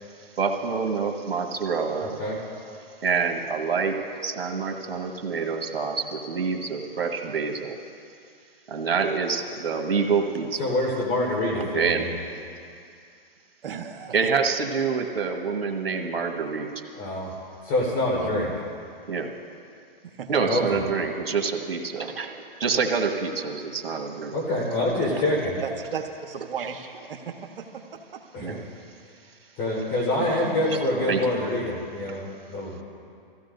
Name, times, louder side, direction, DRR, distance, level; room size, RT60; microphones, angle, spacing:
voice 1, 0.4-2.1 3.0-4.0 4.2-7.8 8.7-10.7 11.6-12.0 14.1-16.7 19.1-19.3 20.3-24.3 28.4-28.6 31.1-31.2, right 5 dB, 85° right, 4 dB, 1.6 m, -26 dB
voice 2, 10.6-12.2 16.9-17.3 17.6-18.5 20.4-20.8 24.3-25.6 28.3-28.6 29.6-32.2 32.5-32.8, left 1 dB, 30° left, -3 dB, 4.4 m, -26 dB
voice 3, 13.6-14.3 18.2-18.4 20.0-20.3 25.2-25.3 25.6-27.6 28.1-28.2 30.2-31.1, right 6 dB, 70° right, 4 dB, 1.3 m, -35 dB
23.0 x 15.5 x 2.7 m, 2.4 s
hypercardioid pair, 140°, 29 cm